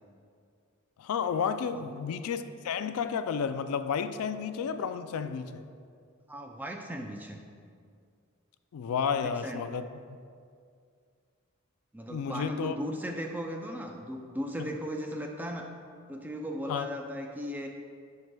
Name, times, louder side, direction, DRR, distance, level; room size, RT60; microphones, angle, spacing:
voice 1, 1.0-5.6 8.7-9.9 12.1-12.7 16.7-16.9, left 6 dB, 80° left, 11 dB, 0.3 m, -31 dB
voice 2, 1.7-2.0 6.3-7.4 9.1-9.8 11.9-15.7 16.1-17.8, equal, 10° right, 2 dB, 0.4 m, -37 dB
11.0 x 4.7 x 2.2 m, 2.3 s
head